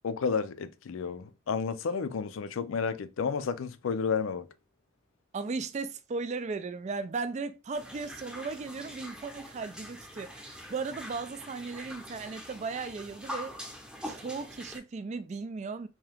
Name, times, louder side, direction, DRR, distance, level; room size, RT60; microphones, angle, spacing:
voice 1, 0.0-4.5, left 5 dB, 90° left, 0.4 m, -31 dB
voice 2, 5.3-13.5 14.0-15.9, right 4 dB, 35° right, 0.3 m, -36 dB
sound 1, 7.7-14.8, equal, 5° right, 0.8 m, -44 dB
3.5 x 2.8 x 3.4 m
head